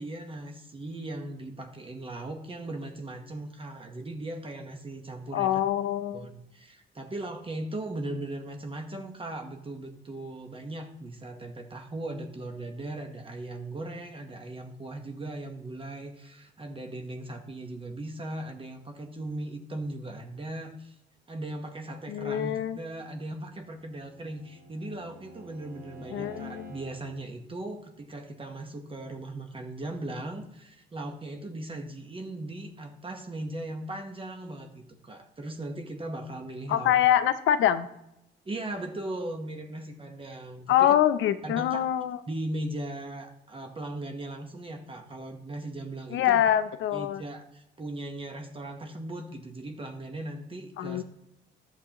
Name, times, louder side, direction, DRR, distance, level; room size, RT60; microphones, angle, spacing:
voice 1, 0.0-5.6 6.1-20.9 21.3-36.9 38.4-40.9 41.4-41.8 42.3-46.4 46.9-51.0, right 1 dB, 25° right, 4 dB, 1.0 m, -38 dB
voice 2, 5.3-6.3 22.1-22.8 26.1-26.7 36.7-37.9 40.7-42.2 46.1-47.2 50.8-51.0, left 11 dB, 80° left, 12 dB, 0.6 m, -24 dB
Bowed string instrument, 23.4-27.1, right 2 dB, 55° right, 2.9 m, -49 dB
12.0 x 7.3 x 2.9 m, 0.87 s
cardioid pair, 90°, 20 cm